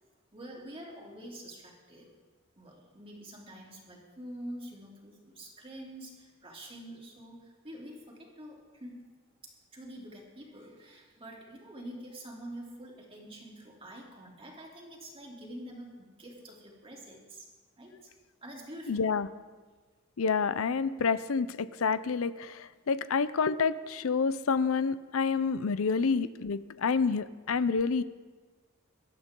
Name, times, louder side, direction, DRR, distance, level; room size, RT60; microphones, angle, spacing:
voice 1, 0.3-2.1 2.6-9.1 9.4-17.5 17.8-18.1 18.4-19.0, right 1 dB, 30° right, -2 dB, 3.2 m, -46 dB
voice 2, 18.9-19.3 20.2-28.0, left 5 dB, 80° left, 15 dB, 0.6 m, -28 dB
23.0 x 12.0 x 3.8 m, 1.4 s
head